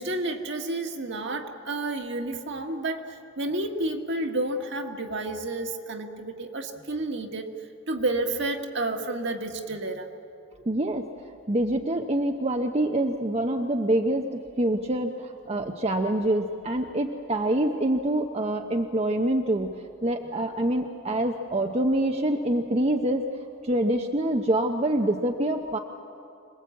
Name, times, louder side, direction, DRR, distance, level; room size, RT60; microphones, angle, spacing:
voice 1, 0.0-7.5 7.9-10.1, right 2 dB, 60° right, 4 dB, 1.7 m, -30 dB
voice 2, 10.7-11.1 11.5-19.7 20.0-23.3 23.6-25.8, right 1 dB, 30° right, 4 dB, 0.8 m, -25 dB
26.0 x 19.5 x 8.3 m, 2.6 s
head